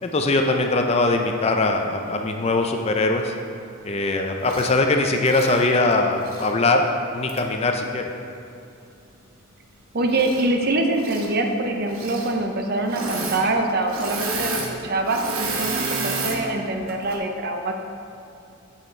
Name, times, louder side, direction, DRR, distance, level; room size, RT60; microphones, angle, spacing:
voice 1, 0.0-3.3 3.8-6.9 7.1-8.0, left 2 dB, 30° left, 4 dB, 0.4 m, -21 dB
Engine / Mechanisms, 4.4-4.8 5.2-6.5 7.3-7.4 10.1-10.6 10.9-11.3 11.9-12.3 12.8-13.4 13.7-16.4 16.9-17.2, right 3 dB, 75° right, 1.0 m, -30 dB
voice 2, 9.9-17.7, right 2 dB, 45° right, 4 dB, 0.6 m, -24 dB
7.3 x 6.5 x 4.4 m, 2.7 s
head